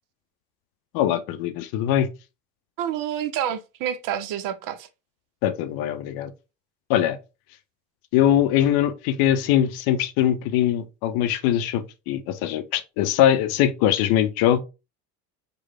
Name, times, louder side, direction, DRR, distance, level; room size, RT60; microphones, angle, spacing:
voice 1, 0.9-2.1 5.4-6.3 6.9-7.2 8.1-14.6, left 11 dB, 50° left, 0.6 m, -22 dB
voice 2, 2.8-4.9, right 10 dB, 45° right, 0.6 m, -28 dB
4.5 x 2.2 x 3.4 m
figure-of-eight pair, 60°, 47 cm